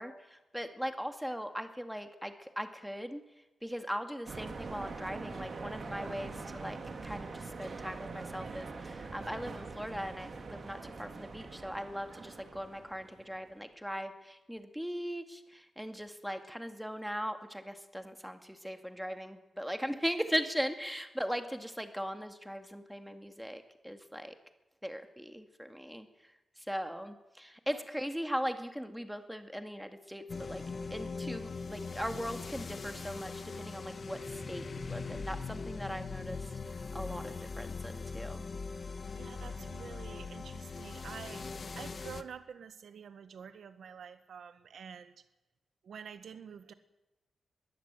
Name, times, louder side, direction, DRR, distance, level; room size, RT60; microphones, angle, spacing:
voice 1, 0.0-3.2 3.6-24.3 24.8-26.1 26.7-30.6 30.9-36.4 36.9-38.5, equal, ahead, 7 dB, 2.1 m, -39 dB
sound 1, 4.3-13.4, right 4 dB, 50° right, 3.3 m, -44 dB
sound 2, 30.3-42.2, left 4 dB, 45° left, 1.4 m, -41 dB
voice 2, 39.1-41.5 41.7-45.2 45.8-46.7, right 7 dB, 75° right, 11 dB, 1.4 m, -48 dB
22.0 x 15.0 x 9.1 m, 1.0 s
wide cardioid pair, 100°, 0 cm